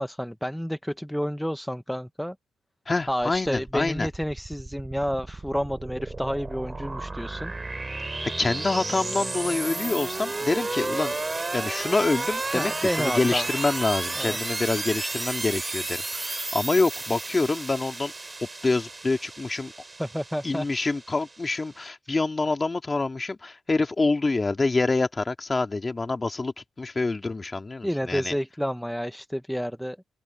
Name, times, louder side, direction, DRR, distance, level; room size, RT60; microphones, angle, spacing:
voice 1, 0.0-2.3 3.1-7.5 12.5-13.5 14.2-14.4 20.0-20.7 27.8-30.0, equal, ahead, 0.7 m, -30 dB
voice 2, 2.9-4.1 8.4-11.2 11.5-18.1 18.6-19.7 20.4-28.4, left 3 dB, 25° left, 2.2 m, -26 dB
sound 1, 3.3-21.8, right 2 dB, 20° right, 6.4 m, -33 dB
cardioid pair, 90°, 0 cm